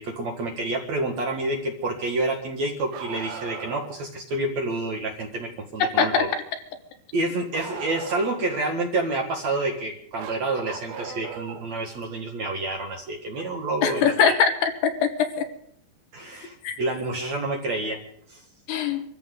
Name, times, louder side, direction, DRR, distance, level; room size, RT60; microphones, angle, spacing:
voice 1, 0.0-6.3 7.1-14.4 16.1-18.0 18.3-18.4, right 2 dB, 50° right, 1 dB, 2.4 m, -28 dB
Bark, 2.9-4.0 7.5-8.6 10.2-11.7 13.3-13.4 15.4-15.5 16.6-16.7, right 8 dB, 70° right, 2.0 m, -37 dB
voice 2, 13.8-15.1 16.6-16.8 18.7-19.0, left 7 dB, 75° left, 6 dB, 3.2 m, -21 dB
25.5 x 14.0 x 3.8 m, 0.69 s
omnidirectional pair, 4.9 m